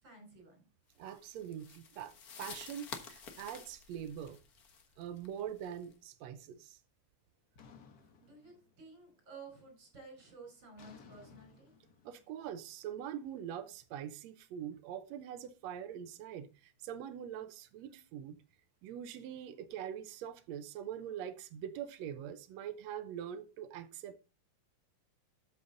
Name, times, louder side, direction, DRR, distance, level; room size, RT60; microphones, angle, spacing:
voice 1, 0.0-0.7 8.2-11.7, right 3 dB, 35° right, 5.6 m, -53 dB
sound 1, 1.0-5.9, left 5 dB, 50° left, 1.1 m, -50 dB
voice 2, 1.0-4.4 5.0-6.8 12.0-18.4 18.8-24.2, right 9 dB, 75° right, 1.9 m, -43 dB
sound 2, 7.6-9.1 9.4-9.9 10.8-13.8, left 5 dB, 70° left, 0.9 m, -60 dB
13.0 x 7.2 x 3.9 m
omnidirectional pair, 3.4 m